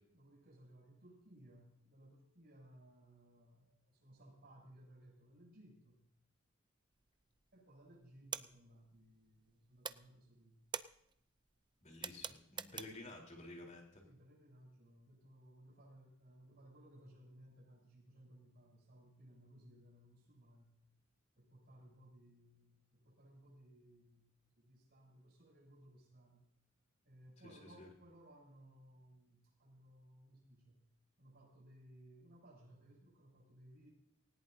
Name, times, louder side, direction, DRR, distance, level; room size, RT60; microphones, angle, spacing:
voice 1, 0.1-6.0 7.5-10.6 14.0-20.7 21.4-26.4 27.0-30.9 31.2-33.9, right 1 dB, 55° right, -1 dB, 7.5 m, -61 dB
sound 1, 7.0-7.5 7.8-9.5 9.8-13.2, right 7 dB, 25° right, 0.5 m, -46 dB
voice 2, 11.8-14.0 27.4-27.9, left 2 dB, 35° left, 1 dB, 3.9 m, -52 dB
19.0 x 18.0 x 2.8 m, 0.72 s
head